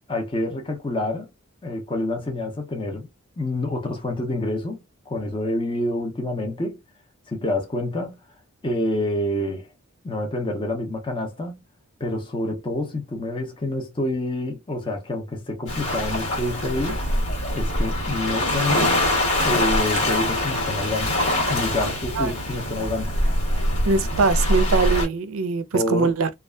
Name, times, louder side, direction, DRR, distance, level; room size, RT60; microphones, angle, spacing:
voice 1, 0.1-1.3 1.6-3.1 3.4-6.8 7.3-8.2 8.6-9.7 10.0-11.6 12.0-17.0 17.5-19.0 19.4-21.2 21.5-23.1 25.7-26.1, left 1 dB, 20° left, 0.5 m, -27 dB
Waves surf, 15.7-25.1, left 1 dB, 75° left, 1.3 m, -23 dB
voice 2, 23.8-26.3, right 4 dB, 70° right, 0.4 m, -22 dB
2.6 x 2.3 x 2.2 m
head